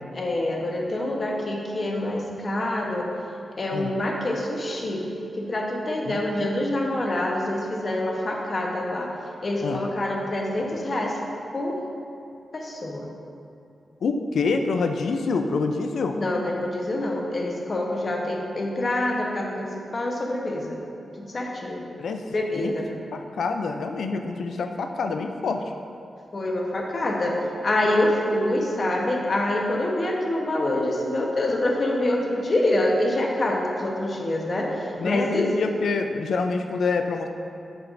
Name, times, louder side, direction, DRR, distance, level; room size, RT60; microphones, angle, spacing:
voice 1, 0.1-3.1 3.6-5.0 5.4-9.1 9.4-11.2 11.5-11.8 12.5-13.1 16.2-20.8 21.2-21.9 22.3-22.8 26.3-27.3 27.6-35.5, left 1 dB, 40° left, -1 dB, 1.0 m, -26 dB
voice 2, 6.1-6.5 9.6-9.8 14.0-16.2 22.0-22.2 22.5-22.7 23.1-25.6 35.0-37.3, left 4 dB, 85° left, 6 dB, 0.4 m, -26 dB
7.8 x 7.8 x 2.6 m, 2.6 s
wide cardioid pair, 120°, 0 cm